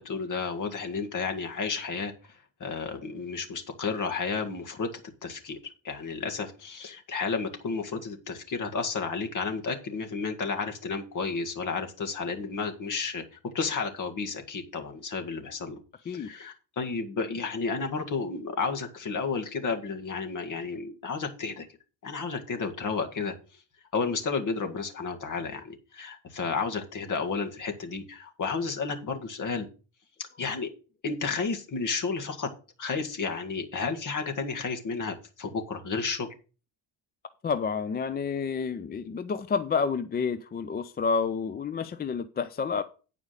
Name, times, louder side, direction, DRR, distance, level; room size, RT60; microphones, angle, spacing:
voice 1, 0.0-2.1 2.6-4.9 5.2-5.6 5.8-15.8 16.1-21.7 22.0-23.3 23.9-29.7 30.4-30.7 31.0-32.5 32.8-36.3, left 4 dB, 40° left, 1.8 m, -32 dB
voice 2, 37.4-42.8, left 5 dB, 20° left, 0.4 m, -29 dB
9.5 x 5.0 x 6.6 m
cardioid pair, 125°, 47 cm